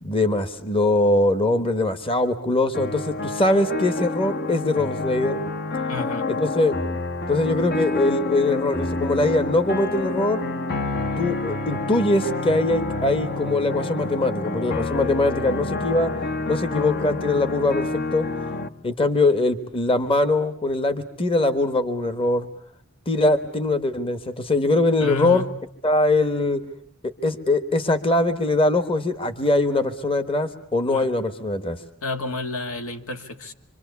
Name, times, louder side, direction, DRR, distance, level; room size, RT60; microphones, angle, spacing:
voice 1, 0.0-5.4 6.3-6.8 7.3-10.5 11.2-16.1 16.5-18.3 18.8-22.5 23.1-25.4 25.8-26.6 27.0-31.8, left 2 dB, 25° left, 1.3 m, -22 dB
sound 1, 2.7-18.7, left 3 dB, 50° left, 1.3 m, -28 dB
voice 2, 5.9-6.3 25.0-25.6 30.9-31.1 32.0-33.5, left 3 dB, 75° left, 1.9 m, -31 dB
26.0 x 25.5 x 8.3 m
head